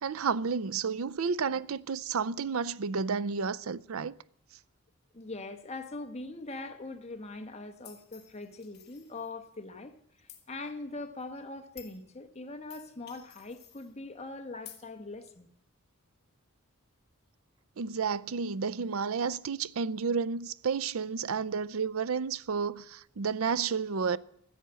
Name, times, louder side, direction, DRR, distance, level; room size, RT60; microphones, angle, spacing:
voice 1, 0.0-4.1 17.8-24.2, right 5 dB, 75° right, 0.5 m, -31 dB
voice 2, 5.1-15.5, left 2 dB, 30° left, 1.3 m, -42 dB
sound 1, 7.8-9.5 10.3-10.4 11.2-11.3 11.8-12.0 12.7-13.9 14.7-14.8, left 11 dB, 50° left, 1.8 m, -52 dB
13.5 x 10.0 x 7.6 m
head